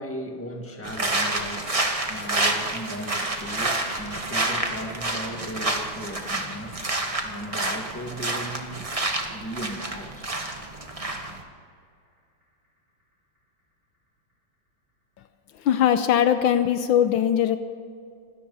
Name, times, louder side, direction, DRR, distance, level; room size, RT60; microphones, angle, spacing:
voice 1, 0.0-6.8 7.2-8.9 9.3-10.3, equal, 5° left, 2 dB, 1.6 m, -36 dB
sound 1, 0.8-11.4, right 2 dB, 20° right, 1.2 m, -29 dB
sound 2, 2.5-14.9 15.2-15.3, equal, 40° right, 6.0 m, -50 dB
voice 2, 15.6-17.6, left 10 dB, 75° left, 10 dB, 1.4 m, -20 dB
26.0 x 13.5 x 4.1 m, 2.3 s
omnidirectional pair, 2.3 m